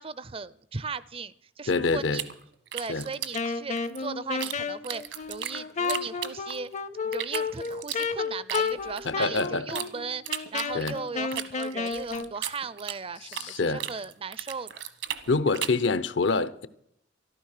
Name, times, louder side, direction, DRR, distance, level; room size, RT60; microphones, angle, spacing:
voice 1, 0.0-2.2 2.7-6.7 7.0-14.7, right 4 dB, 30° right, 0.5 m, -37 dB
voice 2, 1.7-2.2 2.9-3.1 9.0-9.8 10.7-11.0 13.3-13.8 15.3-16.7, left 3 dB, 70° left, 0.8 m, -26 dB
sound 1, 2.1-4.6 4.8-6.7 7.1-9.9 10.3-13.5 13.8-15.9, right 10 dB, 70° right, 1.2 m, -36 dB
Wind instrument woodwind instrument, 3.3-12.3, left 4 dB, 40° left, 0.6 m, -32 dB
13.5 x 12.5 x 6.6 m
head